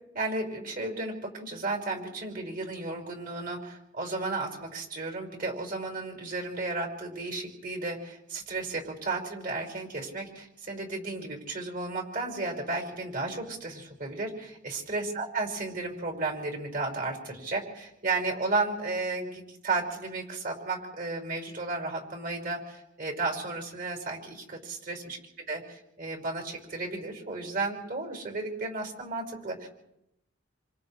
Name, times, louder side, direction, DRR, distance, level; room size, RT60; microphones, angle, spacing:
voice 1, 0.1-25.2 25.5-25.6 26.0-29.7, right 3 dB, 50° right, 1 dB, 5.8 m, -33 dB
28.5 x 27.5 x 3.4 m, 0.85 s
head